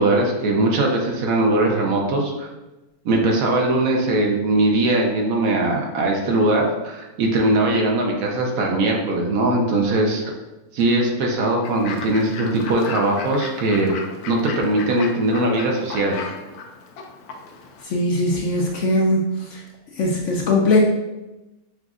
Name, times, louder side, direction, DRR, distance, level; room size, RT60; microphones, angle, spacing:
voice 1, 0.0-2.5 3.0-10.2 10.7-14.0 14.3-16.2, right 2 dB, 70° right, 0 dB, 1.1 m, -20 dB
Fowl / Bird, 11.6-17.8, left 5 dB, 80° left, 1.1 m, -35 dB
voice 2, 17.8-19.2 19.5-19.6 20.0-20.8, left 2 dB, 65° left, -1 dB, 0.8 m, -20 dB
6.0 x 2.5 x 2.4 m, 1.0 s
omnidirectional pair, 1.6 m